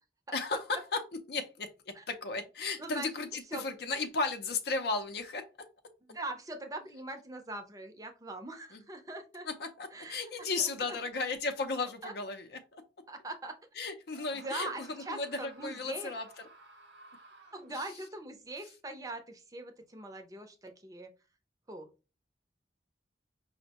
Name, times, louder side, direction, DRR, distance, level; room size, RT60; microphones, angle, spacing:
voice 1, 0.3-5.5 8.7-8.8 9.5-12.8 13.8-16.3 17.7-17.9, left 3 dB, 60° left, 7 dB, 0.5 m, -35 dB
voice 2, 6.1-9.5 9.9-10.2 10.6-11.0 12.0-12.1 13.1-13.6 14.3-16.1 17.5-21.1 21.7-21.9, right 2 dB, 20° right, 6 dB, 0.5 m, -42 dB
Screaming, 14.1-17.9, right 2 dB, 75° right, 0.8 m, -56 dB
5.2 x 2.1 x 2.8 m, 0.31 s
head